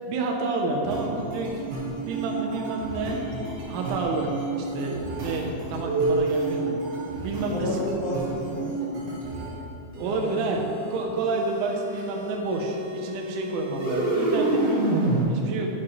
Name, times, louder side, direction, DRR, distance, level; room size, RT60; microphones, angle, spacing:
voice 1, 0.1-1.6 2.1-3.2 3.7-6.8 7.2-7.7 10.0-10.6 10.9-15.0 15.3-15.7, right 3 dB, 90° right, 0 dB, 3.1 m, -29 dB
sound 1, 0.8-9.5 9.9-15.2, right 2 dB, 70° right, 4.2 m, -29 dB
voice 2, 7.5-9.6 10.0-10.4, equal, 65° left, -5 dB, 2.4 m, -32 dB
11.0 x 6.2 x 3.1 m, 2.8 s
omnidirectional pair, 5.4 m